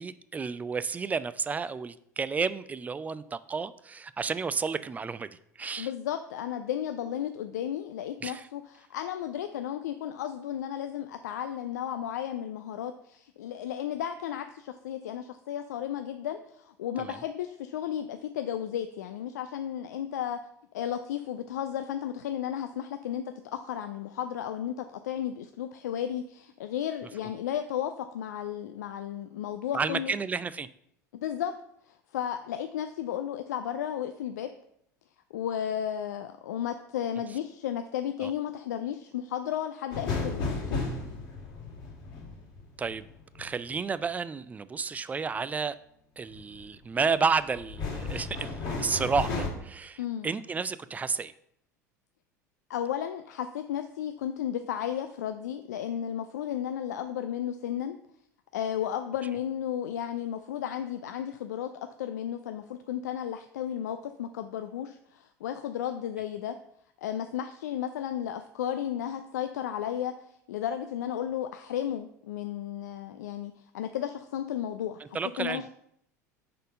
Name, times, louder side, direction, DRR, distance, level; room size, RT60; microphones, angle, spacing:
voice 1, 0.0-5.3 5.6-5.9 8.2-8.5 17.0-17.2 29.7-30.7 38.2-38.3 42.8-43.0 43.4-45.8 46.2-51.3 75.1-75.7, right 5 dB, 15° right, 0.3 m, -31 dB
voice 2, 5.8-20.4 20.7-30.1 31.1-31.5 31.9-34.5 35.3-40.8 50.0-50.3 52.7-58.0 58.5-61.7 62.0-66.6 67.0-75.7, left 10 dB, 70° left, 0.4 m, -34 dB
sound 1, 39.9-43.8 46.3-46.7 47.2-49.5, left 3 dB, 50° left, 2.0 m, -34 dB
5.2 x 4.3 x 5.2 m
figure-of-eight pair, 75°, 10 cm